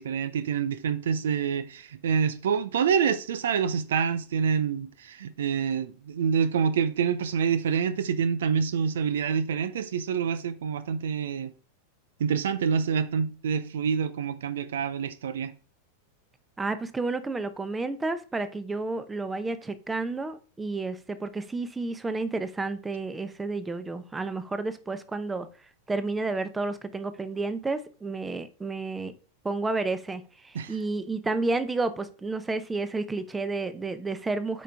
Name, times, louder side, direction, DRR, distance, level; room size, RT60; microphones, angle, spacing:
voice 1, 0.0-11.5 12.2-15.5 30.5-30.7, right 7 dB, 60° right, 0.5 m, -27 dB
voice 2, 16.6-25.5 25.9-29.1 29.4-34.6, right 3 dB, 10° right, 0.8 m, -31 dB
8.5 x 5.2 x 3.4 m
figure-of-eight pair, 90°, 0 cm